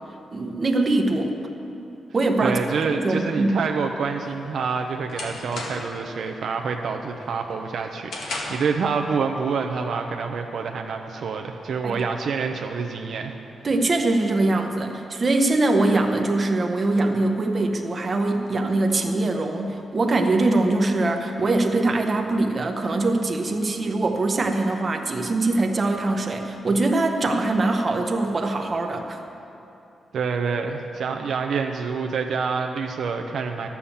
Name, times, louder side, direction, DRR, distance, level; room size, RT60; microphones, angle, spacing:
voice 1, 0.3-1.3 2.1-2.6 3.0-3.5 11.8-12.0 13.6-29.2, right 2 dB, 30° right, 3 dB, 0.8 m, -22 dB
voice 2, 2.4-13.4 30.1-33.7, right 5 dB, 65° right, 4 dB, 0.6 m, -27 dB
sound 1, 4.3-6.1 6.5-6.8 7.2-8.8, left 2 dB, 80° left, 1.9 m, -34 dB
12.0 x 7.1 x 7.1 m, 2.8 s
wide cardioid pair, 160°, 0 cm